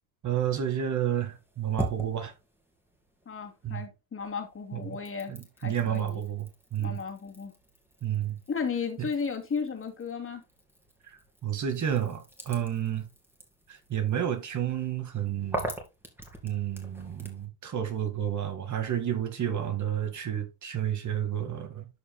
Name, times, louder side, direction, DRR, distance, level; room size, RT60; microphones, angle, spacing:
voice 1, 0.2-2.3 3.6-3.8 4.7-5.0 5.3-7.0 8.0-8.4 9.0-9.1 11.0-13.1 13.7-15.7 16.4-21.9, right 10 dB, 35° right, 1.8 m, -31 dB
sound 1, 1.2-3.9 4.2-17.5, right 1 dB, 5° right, 2.9 m, -43 dB
voice 2, 3.3-6.2 6.8-7.5 8.5-10.4, left 5 dB, 25° left, 2.7 m, -34 dB
13.0 x 5.2 x 2.2 m
supercardioid pair, 110°, 49 cm